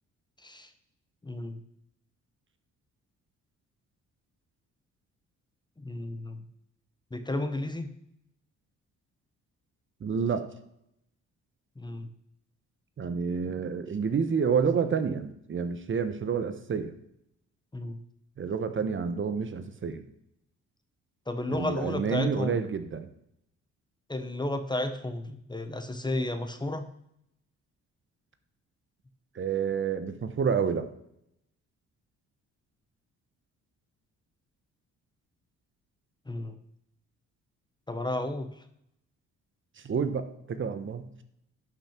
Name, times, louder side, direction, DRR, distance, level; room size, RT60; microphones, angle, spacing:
voice 1, 0.4-0.7 1.2-1.6 5.8-6.4 7.1-7.9 11.8-12.1 17.7-18.0 21.3-22.6 24.1-26.8 36.3-36.5 37.9-38.6, left 1 dB, 15° left, 9 dB, 1.0 m, -33 dB
voice 2, 10.0-10.4 13.0-16.9 18.4-20.0 21.5-23.1 29.3-30.9 39.8-41.0, right 6 dB, 40° right, 10 dB, 1.0 m, -29 dB
11.5 x 6.1 x 4.4 m, 0.75 s
cardioid pair, 90°, 30 cm